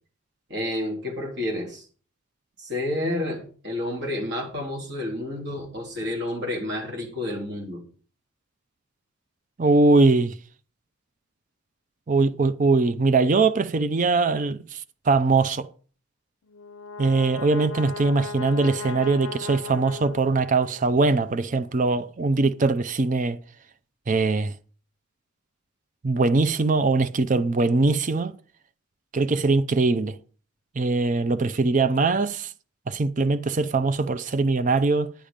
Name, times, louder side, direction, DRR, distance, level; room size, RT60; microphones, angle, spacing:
voice 1, 0.5-1.9 2.6-7.8, left 1 dB, 50° right, 3.5 m, -30 dB
voice 2, 9.6-10.3 12.1-14.8 15.1-15.7 17.0-23.4 24.1-24.5 26.0-28.3 29.1-30.2 30.8-32.5 32.9-35.1, right 3 dB, 35° right, 0.5 m, -21 dB
Brass instrument, 16.5-20.9, left 4 dB, 65° left, 0.5 m, -36 dB
10.5 x 8.7 x 5.1 m
head